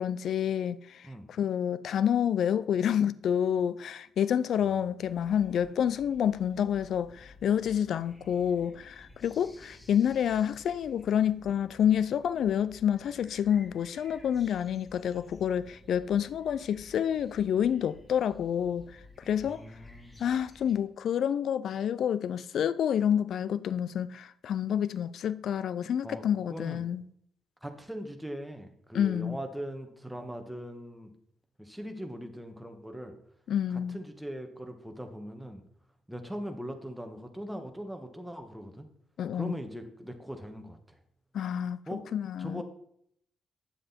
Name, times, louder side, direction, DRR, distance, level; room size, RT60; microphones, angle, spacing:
voice 1, 0.0-18.9 19.2-19.6 20.2-27.0 28.9-29.4 33.5-34.0 39.2-39.5 41.3-42.6, left 9 dB, 65° left, 0.5 m, -28 dB
sound 1, 5.0-20.8, left 2 dB, 20° left, 2.4 m, -55 dB
voice 2, 19.5-20.2 26.0-26.8 27.6-31.1 31.6-33.1 33.7-35.6 36.1-38.9 39.3-41.0 41.9-42.1 42.4-42.6, equal, 5° right, 1.9 m, -40 dB
10.0 x 7.4 x 4.5 m
hypercardioid pair, 45°, 0 cm